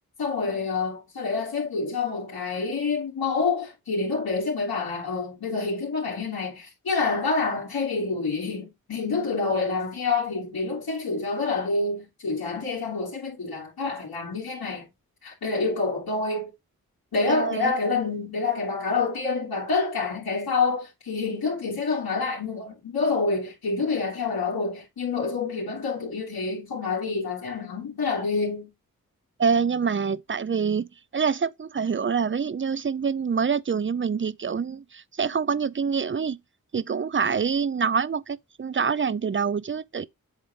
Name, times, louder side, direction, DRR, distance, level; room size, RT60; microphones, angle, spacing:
voice 1, 0.2-14.9 15.2-16.5 17.1-28.7, left 4 dB, 85° left, 2.3 m, -27 dB
voice 2, 17.3-17.7 29.4-36.4 36.7-40.1, right 6 dB, 35° right, 0.6 m, -26 dB
8.0 x 3.5 x 3.9 m
cardioid pair, 40°, 36 cm